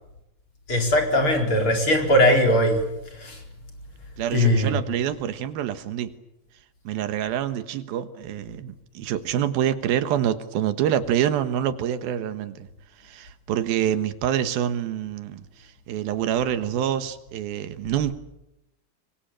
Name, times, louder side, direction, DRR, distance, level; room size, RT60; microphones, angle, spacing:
voice 1, 0.7-3.4 4.3-4.8, left 1 dB, 35° left, 3 dB, 4.9 m, -20 dB
voice 2, 4.2-6.1 6.8-12.7 13.0-18.1, right 10 dB, 90° right, 11 dB, 3.2 m, -26 dB
25.5 x 23.0 x 8.9 m, 0.88 s
omnidirectional pair, 4.1 m